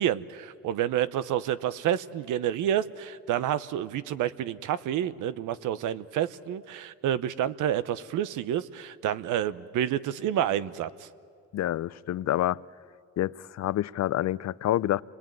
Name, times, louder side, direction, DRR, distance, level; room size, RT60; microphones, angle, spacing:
voice 1, 0.0-11.1, right 10 dB, 85° right, 0.9 m, -29 dB
voice 2, 11.5-12.6 13.2-15.0, left 13 dB, 60° left, 0.6 m, -27 dB
28.0 x 21.0 x 9.1 m
cardioid pair, 90°, 30 cm